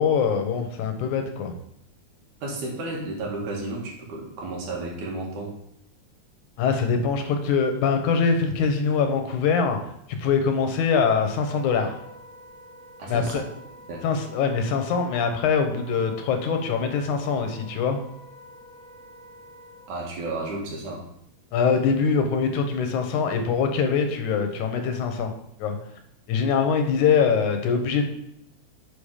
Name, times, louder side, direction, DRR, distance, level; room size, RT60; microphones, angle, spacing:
voice 1, 0.0-1.5 6.6-9.8 10.1-12.0 13.1-13.4 14.0-18.0 21.5-25.3 25.6-25.8 26.3-28.0, left 6 dB, 90° left, 6 dB, 2.5 m, -23 dB
voice 2, 2.4-5.5 13.0-13.4 13.9-14.0 19.9-21.0, right 2 dB, 90° right, -2 dB, 3.4 m, -32 dB
Wind instrument woodwind instrument, 10.9-19.9, equal, 25° right, 2.0 m, -47 dB
7.1 x 6.3 x 5.0 m, 0.76 s
omnidirectional pair, 3.3 m